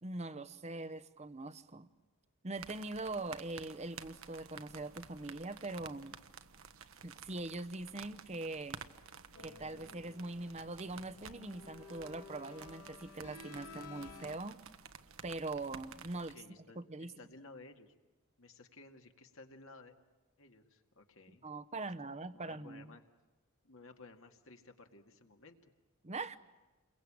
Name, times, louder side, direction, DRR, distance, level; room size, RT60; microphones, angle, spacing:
voice 1, 0.0-1.9 2.4-6.2 7.0-8.8 9.4-14.6 15.2-16.3 16.8-17.1 21.4-22.9 26.0-26.4, right 2 dB, 30° right, 11 dB, 0.9 m, -42 dB
sound 1, 2.5-16.4, right 6 dB, 65° right, 1.2 m, -53 dB
sound 2, 9.3-14.4, left 4 dB, 90° left, 2.3 m, -54 dB
voice 2, 16.1-18.0 18.4-20.0 20.4-21.5 21.7-23.0 23.6-25.6, left 3 dB, 65° left, 4 dB, 2.0 m, -56 dB
29.0 x 22.5 x 8.7 m, 1.2 s
head